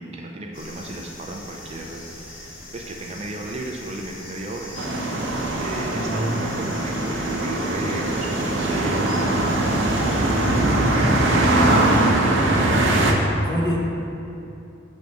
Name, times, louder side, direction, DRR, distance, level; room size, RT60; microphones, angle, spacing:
voice 1, 0.0-5.0 5.6-9.3 10.0-12.6, right 2 dB, 35° right, 1 dB, 0.4 m, -34 dB
sound 1, 0.5-12.1, left 2 dB, 80° left, 1.2 m, -41 dB
sound 2, 4.8-13.1, right 1 dB, 70° right, 0.7 m, -21 dB
voice 2, 5.9-6.4 10.2-11.0 13.4-13.8, equal, 20° left, -3 dB, 0.8 m, -27 dB
6.2 x 3.4 x 5.2 m, 2.7 s
head